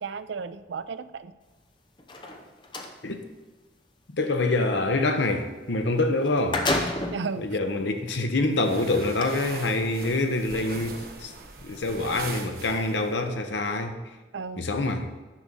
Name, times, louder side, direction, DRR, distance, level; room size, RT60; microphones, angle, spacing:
voice 1, 0.0-1.3 7.1-7.6 14.3-14.7, right 5 dB, 75° right, 0.5 m, -34 dB
sound 1, 2.0-2.9 5.8-5.9 6.2-7.3 8.0-8.1 9.0-9.2, left 2 dB, 25° left, 0.8 m, -29 dB
voice 2, 4.1-6.6 7.4-11.3 11.6-14.0 14.6-15.1, left 2 dB, 75° left, 0.9 m, -26 dB
sound 2, 8.5-13.2, right 4 dB, 50° right, 1.0 m, -41 dB
10.0 x 5.5 x 6.2 m
head